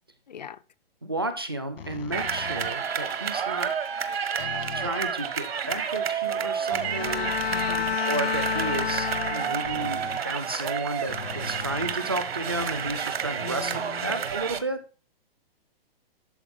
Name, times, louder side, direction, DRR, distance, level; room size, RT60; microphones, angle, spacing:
voice 1, 0.3-0.6 7.5-8.0 13.4-14.2, left 8 dB, 45° left, 0.5 m, -40 dB
voice 2, 1.0-3.7 4.7-7.3 8.1-14.8, right 2 dB, 25° right, 0.4 m, -32 dB
sound 1, 1.8-3.0 4.4-5.0 6.7-10.3 11.1-12.6, left 6 dB, 70° left, 1.4 m, -40 dB
sound 2, 2.1-14.6, right 7 dB, 80° right, 1.2 m, -30 dB
Bowed string instrument, 6.8-10.0, left 7 dB, 85° left, 0.9 m, -30 dB
11.5 x 4.3 x 3.5 m
hypercardioid pair, 180°, 30 cm